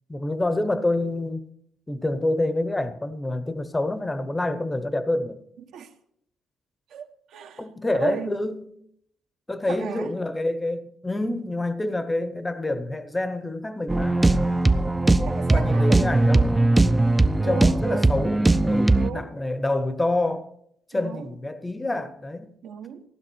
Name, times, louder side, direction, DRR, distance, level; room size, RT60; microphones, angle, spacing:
voice 1, 0.1-1.4 1.9-5.4 7.6-8.6 9.5-14.2 15.3-17.0 17.4-20.5 20.9-22.5, left 2 dB, 10° left, 0.8 m, -27 dB
voice 2, 6.9-7.6 7.9-8.3 9.7-10.1 15.2-16.3 17.4-18.1 18.9-19.3 20.9-21.2 22.6-23.0, right 8 dB, 70° right, 1.3 m, -35 dB
sound 1, 13.9-19.1, right 2 dB, 10° right, 0.4 m, -19 dB
15.5 x 12.0 x 4.5 m
cardioid pair, 165°, 0 cm